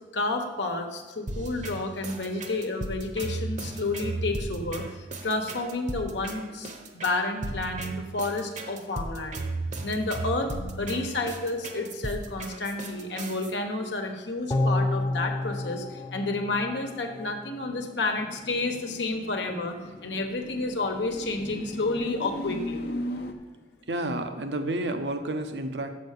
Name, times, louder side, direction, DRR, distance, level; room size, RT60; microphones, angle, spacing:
voice 1, 0.1-9.4 9.8-19.8 20.0-23.2, left 2 dB, 85° left, 4 dB, 1.1 m, -30 dB
sound 1, 1.3-13.5, right 2 dB, 45° right, 0.9 m, -35 dB
sound 2, 14.5-17.8 18.2-18.3, left 2 dB, 25° left, 0.5 m, -30 dB
sound 3, 18.1-23.3, left 1 dB, 65° left, 0.7 m, -38 dB
voice 2, 23.9-25.9, right 1 dB, 70° right, 7 dB, 0.8 m, -30 dB
6.5 x 6.4 x 6.6 m, 1.3 s
head